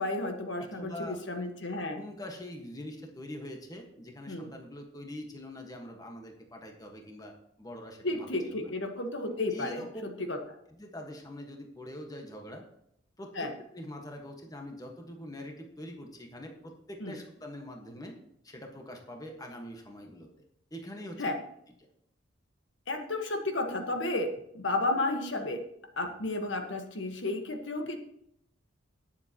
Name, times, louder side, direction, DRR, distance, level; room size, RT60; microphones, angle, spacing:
voice 1, 0.0-2.0 4.3-4.5 8.0-9.8 10.3-10.4 13.3-13.5 17.0-17.2 21.2-21.3 22.9-24.3 24.5-25.6 26.0-28.0, left 2 dB, 65° left, 4 dB, 1.5 m, -32 dB
voice 2, 0.6-1.2 1.7-8.7 9.5-10.1 10.7-12.6 13.2-13.5 13.7-18.1 18.4-20.3 20.7-21.3, left 1 dB, 20° left, 2 dB, 1.5 m, -44 dB
19.5 x 7.4 x 3.0 m, 0.73 s
head